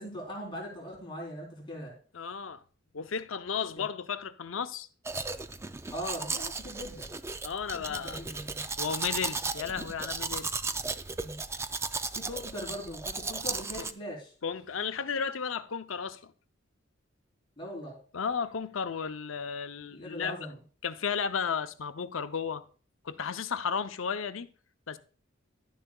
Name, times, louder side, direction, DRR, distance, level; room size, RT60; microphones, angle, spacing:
voice 1, 0.0-1.9 5.9-7.1 7.7-8.6 11.2-11.4 12.2-14.3 17.6-18.0 19.9-20.6, equal, 25° left, 3.8 m, -40 dB
voice 2, 2.1-2.6 2.9-4.9 7.4-8.2 8.8-10.5 14.4-16.3 18.1-20.5 20.8-22.7 23.0-24.5 24.9-25.0, left 6 dB, 85° left, 0.6 m, -34 dB
Domestic sounds home sounds, 5.1-13.9, right 4 dB, 15° right, 0.4 m, -35 dB
11.5 x 10.5 x 2.3 m
head